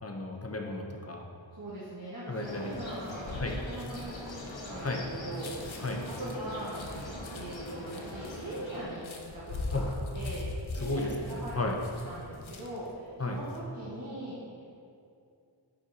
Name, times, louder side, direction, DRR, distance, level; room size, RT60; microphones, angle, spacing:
voice 1, 0.0-1.2 2.3-2.7 3.4-3.6 4.8-5.0 5.8-6.0 9.7-9.9 10.7-11.8 13.2-13.4, left 2 dB, 30° left, 1 dB, 0.7 m, -33 dB
voice 2, 1.5-6.8 7.3-9.1 9.3-10.4 10.7-14.4, right 1 dB, 45° right, -11 dB, 1.4 m, -41 dB
sound 1, 2.3-8.9, left 1 dB, 70° left, 1.0 m, -42 dB
sound 2, 2.7-12.9 13.3-13.6, left 2 dB, 90° left, 0.7 m, -41 dB
5.5 x 5.1 x 4.1 m, 2.5 s
wide cardioid pair, 40°, 46 cm